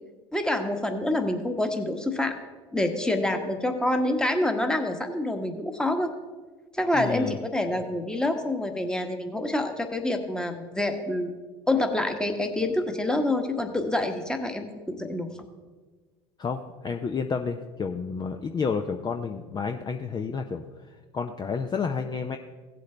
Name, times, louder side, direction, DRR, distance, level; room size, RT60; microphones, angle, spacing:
voice 1, 0.3-2.4 2.7-6.1 6.7-11.3 11.7-15.3, left 1 dB, 5° left, 5 dB, 1.3 m, -27 dB
voice 2, 7.0-7.4 16.4-22.4, left 5 dB, 25° left, 5 dB, 0.6 m, -30 dB
16.5 x 7.7 x 3.4 m, 1.4 s
hypercardioid pair, 85°, 15 cm